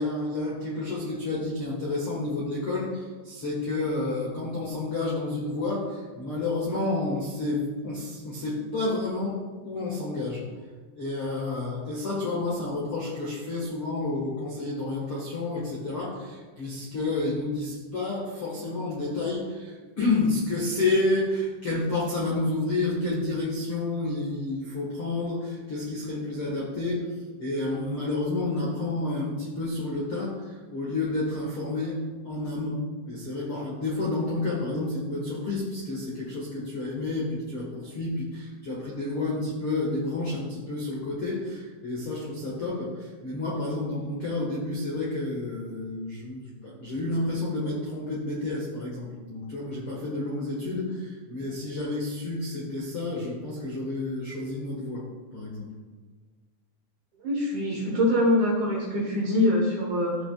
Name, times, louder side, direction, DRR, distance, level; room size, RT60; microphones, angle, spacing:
voice 1, 0.0-10.4 10.9-27.0 27.4-55.0 55.3-55.7, left 2 dB, 90° left, -5 dB, 1.2 m, -30 dB
voice 2, 57.2-60.2, left 1 dB, 60° right, -3 dB, 2.1 m, -24 dB
16.5 x 6.0 x 2.4 m, 1.4 s
omnidirectional pair, 5.3 m